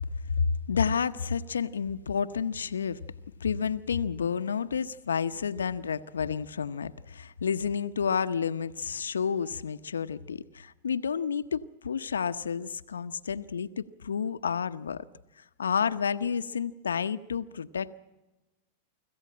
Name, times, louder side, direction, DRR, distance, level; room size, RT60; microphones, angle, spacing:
voice 1, 0.4-3.0 3.4-15.1 15.6-18.0, left 6 dB, 90° left, 0.8 m, -30 dB
25.5 x 15.0 x 8.8 m
hypercardioid pair, 105°, 0 cm